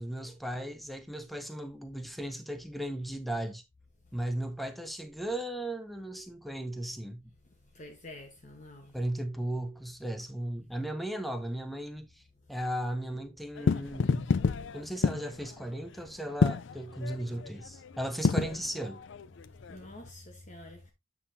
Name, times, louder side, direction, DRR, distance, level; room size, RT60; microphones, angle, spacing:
voice 1, 0.0-3.6 4.1-7.2 8.9-12.2 12.5-14.3 14.7-19.0, right 1 dB, ahead, 0.6 m, -36 dB
voice 2, 7.7-9.0 19.7-20.9, left 1 dB, 35° left, 0.9 m, -48 dB
sound 1, 13.6-20.1, left 5 dB, 60° left, 0.4 m, -30 dB
8.3 x 5.8 x 2.6 m
head